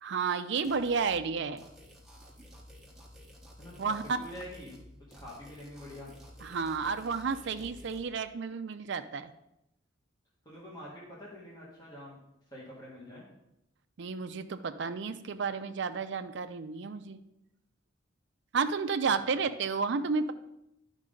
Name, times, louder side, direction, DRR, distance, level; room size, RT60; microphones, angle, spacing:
voice 1, 0.0-1.6 3.8-4.0 6.4-9.3 14.0-17.2 18.5-20.3, right 5 dB, 60° right, 9 dB, 0.5 m, -31 dB
sound 1, 0.6-1.2 1.6-4.9 5.1-8.0, equal, ahead, 1.1 m, -52 dB
voice 2, 3.6-4.8 5.2-6.1 10.5-12.2 12.5-13.3 19.2-19.5, equal, 20° left, -6 dB, 1.8 m, -46 dB
11.0 x 5.3 x 3.8 m, 0.83 s
head